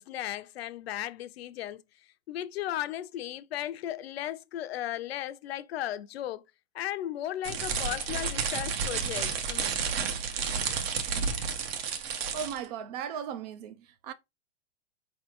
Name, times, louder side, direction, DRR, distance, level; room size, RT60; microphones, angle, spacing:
voice 1, 0.0-1.8 2.3-6.4 6.7-9.7, left 12 dB, 60° left, 0.7 m, -36 dB
sound 1, 7.4-12.7, right 6 dB, 55° right, 1.2 m, -31 dB
voice 2, 12.3-14.1, right 8 dB, 35° right, 0.5 m, -37 dB
4.8 x 3.3 x 3.0 m
hypercardioid pair, 125°, 36 cm